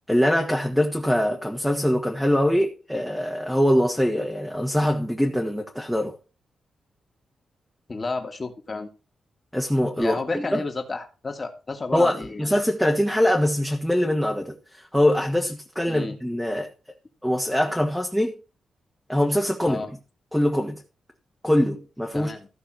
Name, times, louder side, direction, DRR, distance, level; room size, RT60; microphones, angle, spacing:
voice 1, 0.1-6.2 9.5-10.6 11.9-16.7 17.2-18.3 19.1-19.8 20.3-20.8 21.4-22.3, equal, ahead, 1.7 m, -23 dB
voice 2, 7.9-8.9 10.0-12.4 15.9-16.2 19.6-19.9 22.1-22.5, left 3 dB, 25° left, 2.6 m, -31 dB
15.0 x 6.2 x 6.2 m
wide cardioid pair, 160°, 0 cm